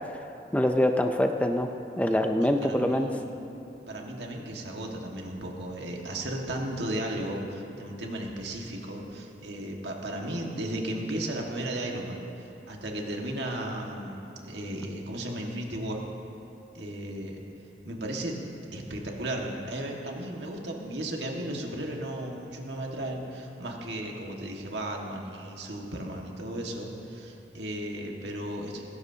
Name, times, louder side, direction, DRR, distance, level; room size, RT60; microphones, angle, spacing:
voice 1, 0.5-1.7 2.0-3.1, left 1 dB, 10° left, 5 dB, 0.5 m, -24 dB
voice 2, 2.4-3.3 3.9-16.0 16.7-17.4 17.8-18.4 18.7-28.8, right 1 dB, 75° right, 0 dB, 1.7 m, -35 dB
19.0 x 16.5 x 2.8 m, 3.0 s
head